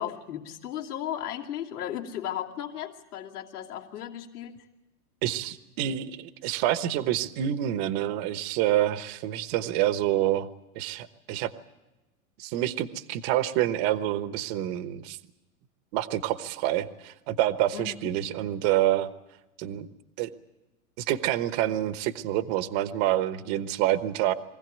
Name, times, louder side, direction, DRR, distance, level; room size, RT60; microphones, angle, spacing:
voice 1, 0.0-4.6 17.7-17.9, left 10 dB, 80° left, 0 dB, 2.8 m, -35 dB
voice 2, 5.2-10.5 10.7-11.5 12.4-15.2 15.9-19.1 19.6-19.9 20.2-20.3 21.0-24.3, right 13 dB, 45° right, 12 dB, 1.1 m, -27 dB
23.5 x 16.0 x 9.2 m, 1.0 s
supercardioid pair, 150°, 45 cm